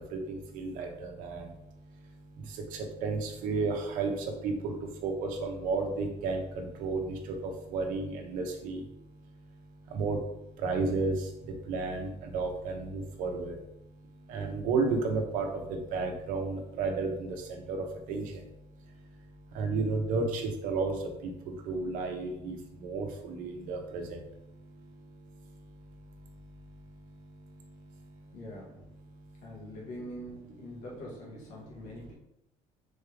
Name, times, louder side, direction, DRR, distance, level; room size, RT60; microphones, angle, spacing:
voice 1, 0.1-1.4 3.0-4.1 4.4-4.7 5.0-7.1 7.4-8.8 9.9-10.2 10.6-11.2 11.7-13.6 14.3-18.3 19.5-20.9 21.7-24.2, right 4 dB, 75° right, 3 dB, 0.9 m, -32 dB
voice 2, 28.3-28.8 29.4-32.1, left 1 dB, 80° left, -4 dB, 1.5 m, -44 dB
4.3 x 3.4 x 3.4 m, 0.82 s
cardioid pair, 125°, 14 cm